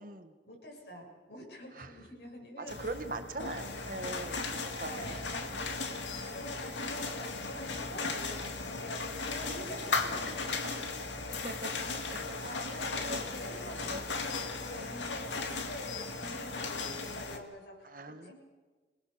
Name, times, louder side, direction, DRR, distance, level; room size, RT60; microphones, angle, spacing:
voice 1, 0.4-2.8 4.3-5.3 6.0-10.7 12.0-17.9 18.2-18.3, equal, 65° left, 0 dB, 7.4 m, -47 dB
voice 2, 2.6-4.5 4.8-5.1 5.5-5.6 10.6-10.9 11.3-12.2 13.0-13.2 13.8-14.0 14.7-14.9 17.8-18.3, right 2 dB, 50° right, 8 dB, 1.6 m, -41 dB
sound 1, 2.7-17.4, left 3 dB, 90° left, 2.4 m, -36 dB
27.5 x 20.0 x 7.0 m, 1.3 s
head